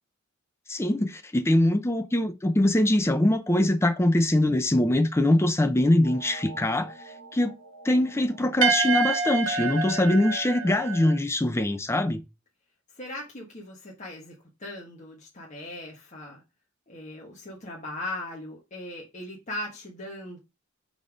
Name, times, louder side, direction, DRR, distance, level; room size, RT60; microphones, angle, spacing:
voice 1, 0.7-6.9 7.3-7.5 7.8-12.2, left 1 dB, 15° left, 0.5 m, -23 dB
sound 1, 6.0-11.2, right 5 dB, 65° right, 1.4 m, -29 dB
voice 2, 12.9-16.4 16.9-20.4, left 1 dB, 35° left, 1.4 m, -39 dB
5.3 x 4.1 x 4.9 m
head